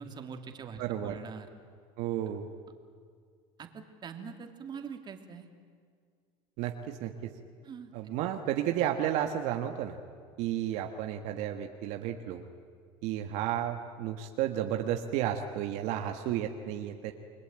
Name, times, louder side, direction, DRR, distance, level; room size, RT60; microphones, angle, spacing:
voice 1, 0.0-1.5 3.6-5.5 7.6-7.9, right 6 dB, 35° right, 5 dB, 2.8 m, -43 dB
voice 2, 0.8-1.2 2.0-2.5 6.6-7.3 7.9-10.0 10.4-12.5 13.0-17.1, right 11 dB, 70° right, 5 dB, 1.6 m, -32 dB
29.0 x 21.5 x 9.0 m, 2.1 s
supercardioid pair, 120°, 13 cm